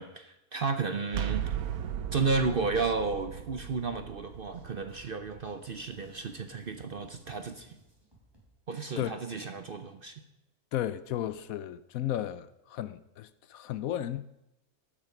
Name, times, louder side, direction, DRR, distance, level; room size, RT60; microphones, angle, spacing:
voice 1, 0.0-1.6 2.1-7.8 8.7-10.2, right 4 dB, 50° right, 0.7 m, -32 dB
sound 1, 1.1-6.8, right 10 dB, 70° right, 1.2 m, -37 dB
sound 2, 4.4-8.5, right 2 dB, 15° right, 3.8 m, -60 dB
voice 2, 10.7-14.2, left 12 dB, 70° left, 0.9 m, -34 dB
12.5 x 8.6 x 5.9 m
omnidirectional pair, 1.6 m